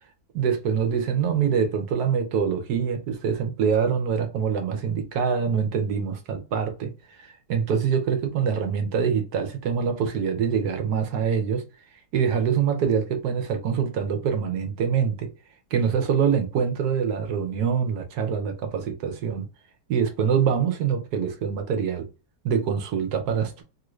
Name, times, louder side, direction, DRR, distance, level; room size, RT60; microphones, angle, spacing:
voice 1, 0.3-6.9 7.5-11.6 12.1-15.3 15.7-19.5 19.9-22.1 22.4-23.6, right 7 dB, 70° right, 1.2 m, -24 dB
3.0 x 2.5 x 3.0 m
omnidirectional pair, 1.8 m